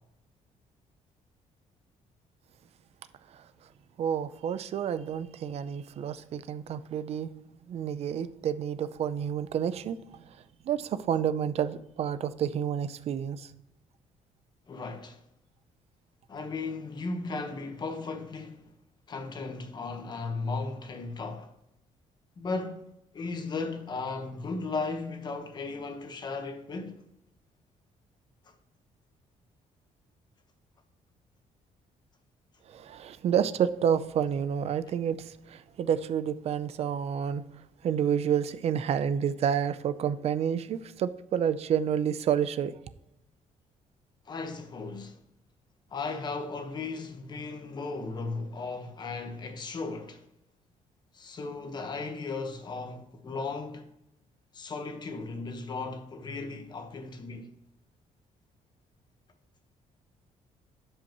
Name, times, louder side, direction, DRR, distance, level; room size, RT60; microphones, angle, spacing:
voice 1, 4.0-7.3 7.7-10.3 10.6-13.5 32.7-37.4 37.8-42.7, right 8 dB, 50° right, 0.5 m, -29 dB
voice 2, 14.7-15.2 16.3-18.7 19.1-21.5 22.4-22.9 23.1-27.0 28.5-28.6 44.3-45.2 45.9-50.2 51.1-53.9 54.5-57.5, left 3 dB, 30° left, 1.2 m, -36 dB
12.5 x 5.6 x 3.0 m
cardioid pair, 155°, 14 cm